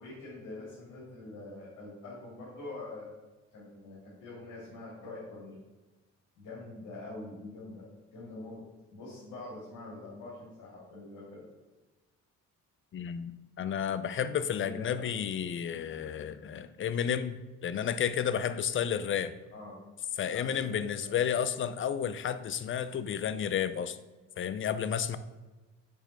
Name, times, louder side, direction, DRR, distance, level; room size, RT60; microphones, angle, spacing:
voice 1, 0.0-3.1 3.5-5.6 6.4-7.8 8.1-8.6 8.9-11.5 14.5-15.1 19.5-19.8 20.3-21.2, left 2 dB, 85° left, -6 dB, 2.1 m, -44 dB
voice 2, 12.9-13.3 13.6-17.4 17.6-19.3 20.2-24.0 24.4-25.2, left 8 dB, 40° left, 14 dB, 0.5 m, -31 dB
6.9 x 3.2 x 5.2 m, 1.2 s
cardioid pair, 90°, 30 cm